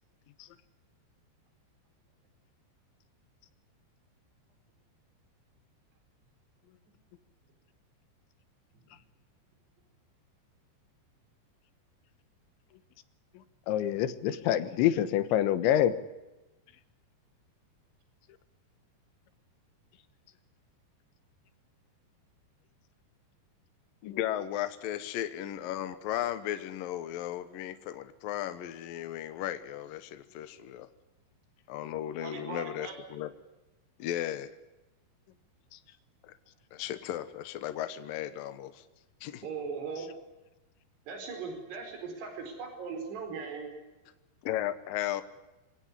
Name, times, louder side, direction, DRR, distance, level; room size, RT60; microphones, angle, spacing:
voice 1, 13.7-15.9, left 11 dB, 85° left, 13 dB, 3.7 m, -26 dB
voice 2, 24.0-30.9 31.7-33.3 34.0-34.6 36.2-36.3 36.7-38.8 39.2-39.5 44.4-45.2, left 12 dB, 70° left, 11 dB, 2.4 m, -35 dB
voice 3, 32.2-32.9 39.4-40.1 41.1-43.7, right 5 dB, 65° right, 5 dB, 6.7 m, -39 dB
25.5 x 17.0 x 9.7 m, 1.0 s
omnidirectional pair, 5.1 m